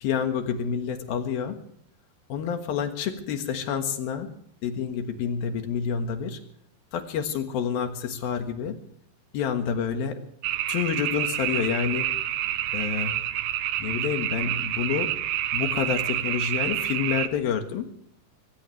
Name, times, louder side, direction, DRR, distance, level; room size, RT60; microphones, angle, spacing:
voice 1, 0.0-1.6 2.3-4.3 4.6-6.4 6.9-8.8 9.3-10.2 10.7-12.1 12.7-13.2 13.8-15.1 15.5-17.9, left 7 dB, 65° left, 7 dB, 3.1 m, -28 dB
sound 1, 10.4-17.3, right 13 dB, 80° right, 2.9 m, -28 dB
23.0 x 18.5 x 3.2 m, 0.67 s
omnidirectional pair, 5.0 m